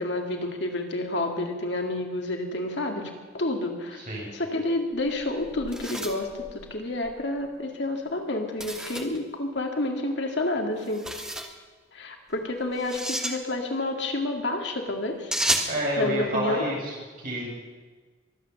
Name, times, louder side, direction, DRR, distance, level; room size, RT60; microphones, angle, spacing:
voice 1, 0.0-11.0 11.9-15.3 15.6-16.6, left 2 dB, 65° left, 3 dB, 2.2 m, -29 dB
sound 1, 4.9-7.2 8.6-9.2 10.8-11.5 12.8-13.4 15.3-15.8, right 1 dB, 5° right, 1.4 m, -31 dB
voice 2, 15.7-17.5, equal, 50° right, -4 dB, 6.9 m, -28 dB
23.0 x 8.7 x 7.0 m, 1.4 s
head